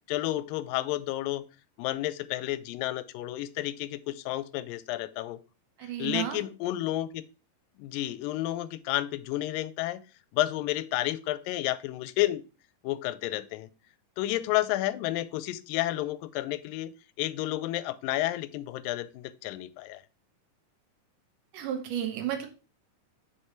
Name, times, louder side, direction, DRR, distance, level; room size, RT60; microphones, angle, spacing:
voice 1, 0.1-1.4 1.8-5.4 6.0-7.2 7.8-10.0 10.3-12.4 12.8-13.7 14.2-16.9 17.2-20.0, left 15 dB, 85° left, 16 dB, 2.3 m, -31 dB
voice 2, 5.8-6.4 21.5-22.5, right 10 dB, 70° right, 5 dB, 2.5 m, -32 dB
6.7 x 5.4 x 4.4 m, 0.33 s
omnidirectional pair, 3.9 m